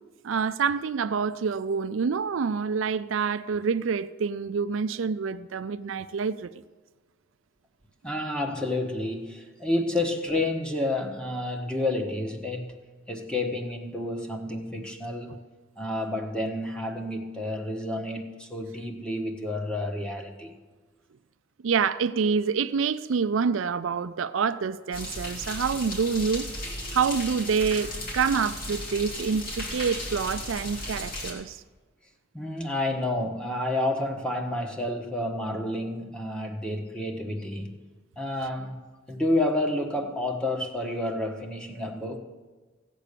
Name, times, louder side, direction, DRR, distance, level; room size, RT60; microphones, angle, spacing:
voice 1, 0.2-6.5 15.3-15.4 21.6-26.5 26.9-31.6, right 5 dB, 70° right, 0.4 m, -27 dB
voice 2, 8.0-12.7 13.1-15.3 15.8-20.5 32.3-37.8 38.2-38.8 39.1-42.2, left 1 dB, 5° left, 1.4 m, -30 dB
sound 1, 24.9-31.3, left 1 dB, 45° left, 2.7 m, -35 dB
16.0 x 8.3 x 6.8 m
head